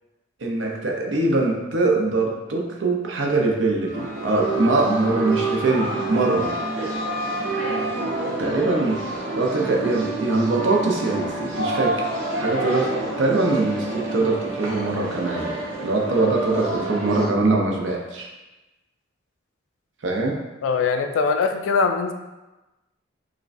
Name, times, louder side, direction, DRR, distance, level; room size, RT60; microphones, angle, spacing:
voice 1, 0.4-6.5 8.4-9.0 9.4-12.1 12.4-18.3 20.0-20.4, right 3 dB, 70° right, 0 dB, 0.6 m, -23 dB
Wind instrument woodwind instrument, 3.8-8.1, left 2 dB, 15° left, 0.6 m, -35 dB
sound 1, 3.9-17.3, right 2 dB, 85° right, 0.9 m, -28 dB
sound 2, 5.7-14.7, equal, 5° right, 1.4 m, -44 dB
voice 2, 20.6-22.1, left 5 dB, 90° left, 6 dB, 0.3 m, -22 dB
4.7 x 2.2 x 2.5 m, 1.1 s
head